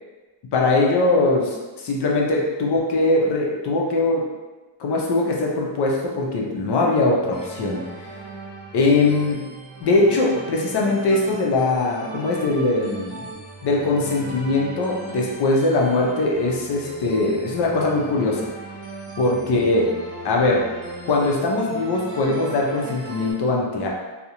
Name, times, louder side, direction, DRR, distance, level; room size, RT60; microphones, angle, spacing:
voice 1, 0.5-4.2 4.8-7.8 8.7-9.5 9.8-13.2 13.6-18.5 19.2-19.9 20.2-20.7 21.0-23.9, left 2 dB, 60° left, -1 dB, 0.5 m, -21 dB
sound 1, 7.3-23.3, right 2 dB, 10° left, 0.4 m, -38 dB
2.4 x 2.1 x 2.8 m, 1.2 s
wide cardioid pair, 165°, 47 cm